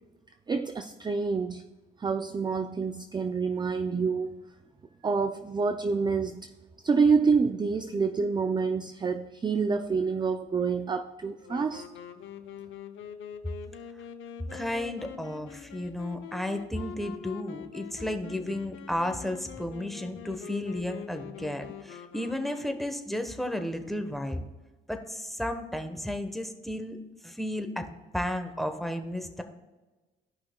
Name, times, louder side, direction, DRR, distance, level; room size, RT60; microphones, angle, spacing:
voice 1, 0.5-1.7 2.0-4.4 5.0-6.5 6.8-11.9, right 5 dB, 20° right, 8 dB, 0.4 m, -27 dB
Wind instrument woodwind instrument, 11.4-23.1, left 9 dB, 80° left, 0.7 m, -44 dB
voice 2, 14.5-24.4 24.9-27.0 27.2-29.4, left 1 dB, ahead, 6 dB, 0.9 m, -33 dB
15.0 x 5.6 x 2.2 m, 1.2 s
cardioid pair, 90°, 20 cm